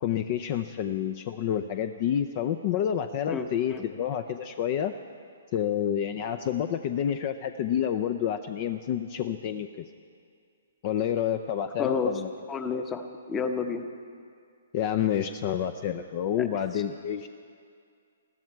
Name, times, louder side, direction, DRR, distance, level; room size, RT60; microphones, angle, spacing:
voice 1, 0.0-4.9 5.5-9.7 10.8-12.3 14.7-17.3, left 9 dB, 35° left, 9 dB, 0.5 m, -29 dB
voice 2, 11.8-12.1 12.5-13.8 16.4-16.5, left 5 dB, 15° left, 7 dB, 0.9 m, -30 dB
21.0 x 14.5 x 4.6 m, 2.3 s
hypercardioid pair, 155°, 0 cm